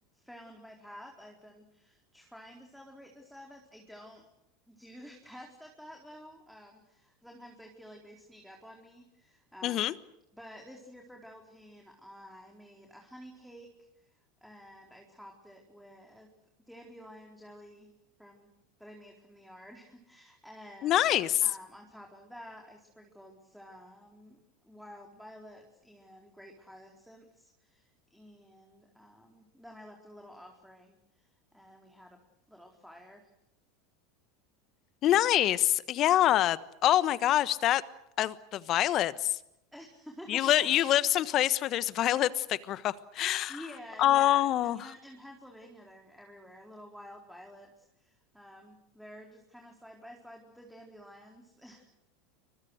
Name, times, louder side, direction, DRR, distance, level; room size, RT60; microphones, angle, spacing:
voice 1, 0.1-4.2 4.7-9.9 10.3-13.7 14.4-16.3 16.7-17.9 18.2-18.5 18.8-21.1 21.4-24.4 24.6-32.2 32.5-33.3 35.0-35.2 39.7-40.5 43.5-44.5 44.7-51.9, equal, ahead, 1 dB, 4.3 m, -51 dB
voice 2, 9.6-9.9 20.8-21.4 35.0-37.8 38.2-39.4 40.3-43.6 44.0-44.8, left 13 dB, 45° left, 16 dB, 1.3 m, -26 dB
29.0 x 24.5 x 6.6 m, 0.83 s
hypercardioid pair, 85°, 0 cm